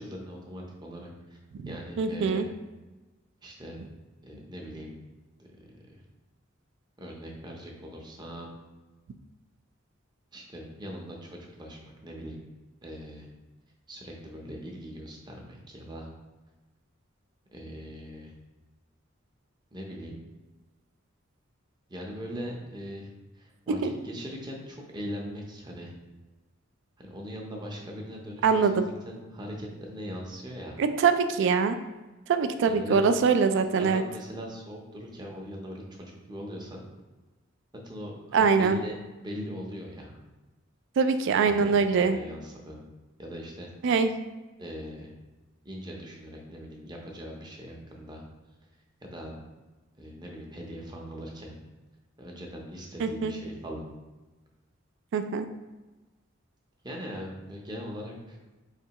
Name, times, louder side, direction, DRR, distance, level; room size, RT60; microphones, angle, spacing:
voice 1, 0.0-1.4 1.7-2.5 3.4-3.9 4.2-4.9 5.4-5.5 5.9-6.0 7.0-8.5 10.3-12.4 12.8-13.3 13.9-16.1 17.5-18.3 19.7-20.2 21.9-23.1 23.3-25.9 27.0-30.8 32.7-33.0 33.8-36.8 37.8-40.2 41.4-42.9 43.2-43.7 44.6-45.1 45.6-48.2 49.0-49.3 50.0-51.6 52.2-53.9 56.8-58.4, equal, 20° right, 0 dB, 0.6 m, -40 dB
voice 2, 2.0-2.5 23.8-23.9 28.4-28.8 30.8-31.8 32.3-34.0 38.3-38.8 41.0-42.2 43.8-44.1 53.0-53.3 55.1-55.5, right 5 dB, 60° right, 9 dB, 0.3 m, -23 dB
4.5 x 3.2 x 2.9 m, 1.2 s
head